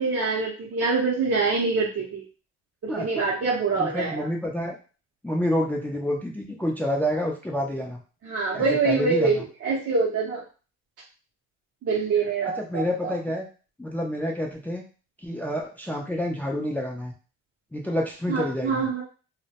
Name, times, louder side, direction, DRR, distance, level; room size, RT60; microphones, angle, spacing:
voice 1, 0.0-2.2 2.8-4.3 8.2-10.4 11.8-13.1 18.3-19.0, right 4 dB, 50° right, -3 dB, 0.6 m, -25 dB
voice 2, 2.9-3.3 3.8-4.7 5.2-8.0 8.5-9.4 12.6-13.5 13.8-14.8 15.2-17.1 17.7-18.9, equal, 5° left, 0 dB, 0.4 m, -28 dB
2.1 x 2.1 x 2.8 m, 0.36 s
cardioid pair, 90°, 30 cm